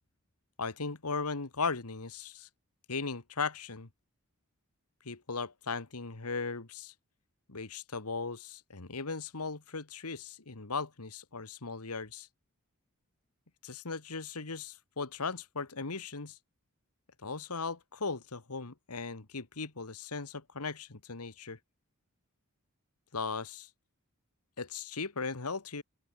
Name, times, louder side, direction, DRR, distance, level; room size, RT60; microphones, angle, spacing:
voice 1, 0.6-2.5 2.9-3.9 5.0-6.9 7.5-12.3 13.6-16.4 17.2-21.6 23.1-23.7 24.6-25.8, left 4 dB, 90° left, 1.7 m, -37 dB
open air
head